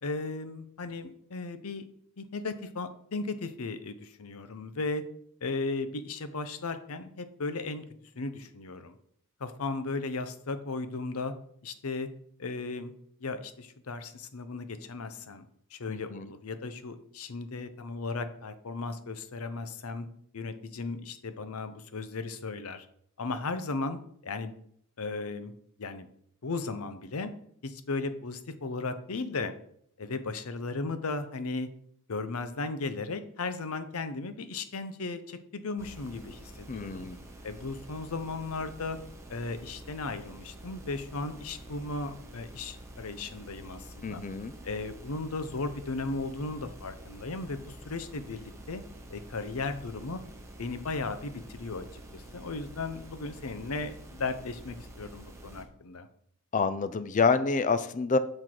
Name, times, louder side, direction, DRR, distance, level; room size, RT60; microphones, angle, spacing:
voice 1, 0.0-1.9 2.2-5.0 5.4-7.8 8.1-8.9 9.4-11.3 11.6-12.1 12.4-12.9 13.2-15.4 15.7-20.1 20.3-22.9 23.2-24.5 25.0-25.5 25.8-26.1 26.4-27.3 27.6-29.5 30.0-31.7 32.1-37.1 37.4-39.0 39.3-44.3 44.6-48.8 49.1-50.2 50.6-56.1, left 3 dB, 70° left, 10 dB, 0.7 m, -36 dB
voice 2, 15.9-16.3 36.7-37.2 44.0-44.5 56.5-58.2, left 4 dB, 35° left, 13 dB, 0.4 m, -27 dB
sound 1, 35.8-55.6, right 1 dB, 15° right, 1.1 m, -48 dB
6.6 x 6.1 x 4.5 m, 0.67 s
head